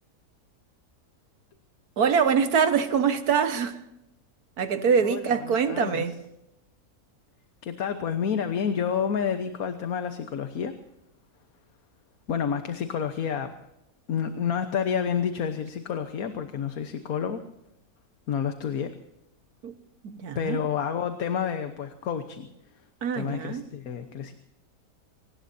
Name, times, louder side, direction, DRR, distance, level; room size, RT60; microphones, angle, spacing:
voice 1, 2.0-3.8 4.6-6.1 19.6-19.8 20.0-20.6 23.0-23.7, right 6 dB, 80° right, 1.8 m, -24 dB
voice 2, 5.0-6.0 7.6-10.7 12.3-13.5 14.1-17.4 18.3-18.9 20.3-22.5 23.1-24.3, left 7 dB, 70° left, 1.6 m, -29 dB
25.0 x 19.0 x 2.7 m
omnidirectional pair, 1.6 m